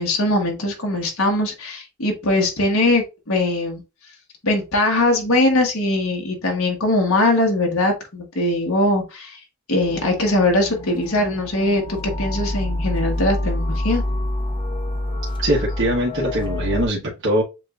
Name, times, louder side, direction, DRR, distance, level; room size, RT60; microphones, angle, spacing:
voice 1, 0.0-3.8 4.4-9.4 9.7-14.0, left 2 dB, 80° left, 1 dB, 1.4 m, -21 dB
sound 1, 9.8-16.9, left 1 dB, 25° left, 0.8 m, -27 dB
voice 2, 15.4-17.4, right 1 dB, 60° right, -5 dB, 1.1 m, -21 dB
7.4 x 2.6 x 2.4 m, 0.27 s
head